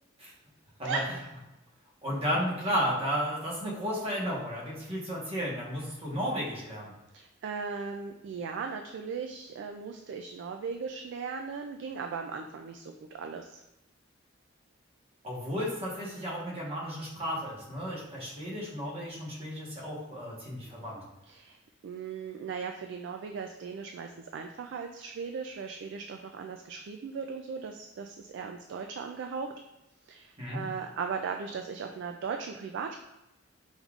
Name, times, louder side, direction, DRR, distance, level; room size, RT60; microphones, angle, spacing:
voice 1, 2.0-6.9 15.2-21.0 30.4-30.6, equal, 30° right, -4 dB, 1.2 m, -33 dB
voice 2, 7.1-13.6 21.3-21.6 21.8-29.5 30.0-33.0, right 5 dB, 60° right, 4 dB, 0.3 m, -37 dB
5.4 x 3.5 x 2.4 m, 0.98 s
head